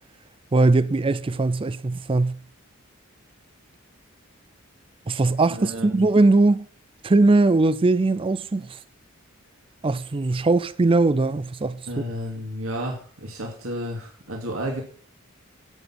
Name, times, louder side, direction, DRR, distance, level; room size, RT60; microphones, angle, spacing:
voice 1, 0.5-2.4 5.1-6.7 7.0-8.8 9.8-11.8, right 2 dB, 25° right, 0.4 m, -20 dB
voice 2, 5.5-6.1 11.9-14.8, equal, 75° right, 2.5 m, -32 dB
11.0 x 8.0 x 6.0 m
head